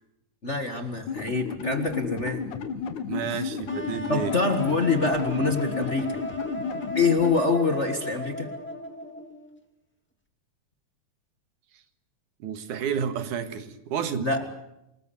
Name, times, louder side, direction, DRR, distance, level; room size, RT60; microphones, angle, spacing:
voice 1, 0.4-2.5 4.1-6.2 6.9-8.5 14.2-14.4, left 4 dB, 30° left, 6 dB, 1.4 m, -25 dB
sound 1, 1.1-7.4, left 6 dB, 80° left, 3.1 m, -33 dB
voice 2, 3.1-4.3 12.4-14.3, right 7 dB, 90° right, 9 dB, 3.1 m, -31 dB
sound 2, 3.7-9.5, equal, 5° left, 2.0 m, -36 dB
28.0 x 20.0 x 7.0 m, 0.88 s
omnidirectional pair, 3.4 m